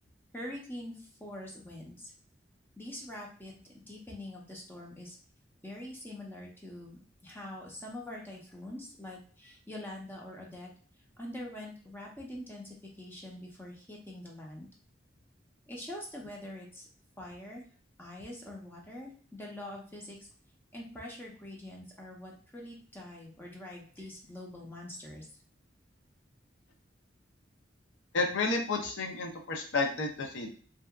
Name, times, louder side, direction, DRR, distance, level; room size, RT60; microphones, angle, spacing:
voice 1, 0.3-2.1 2.8-5.2 5.6-10.7 11.2-14.7 15.7-16.9 17.2-17.6 18.0-20.2 20.7-25.2, left 1 dB, 10° left, -1 dB, 0.6 m, -44 dB
voice 2, 28.1-30.5, left 3 dB, 90° left, 3 dB, 0.6 m, -31 dB
2.7 x 2.2 x 2.2 m, 0.43 s
head